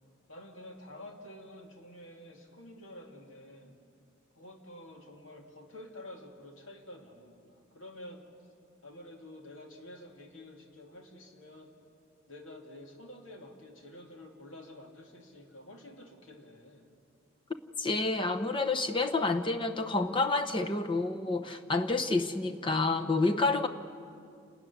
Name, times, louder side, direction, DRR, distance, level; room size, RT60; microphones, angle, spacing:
voice 1, 0.3-3.8 4.4-8.3 8.8-11.8 12.3-16.9, left 1 dB, 70° left, 2 dB, 2.7 m, -49 dB
voice 2, 17.8-23.7, left 3 dB, 25° left, 6 dB, 1.0 m, -29 dB
28.0 x 13.0 x 9.9 m, 2.3 s
head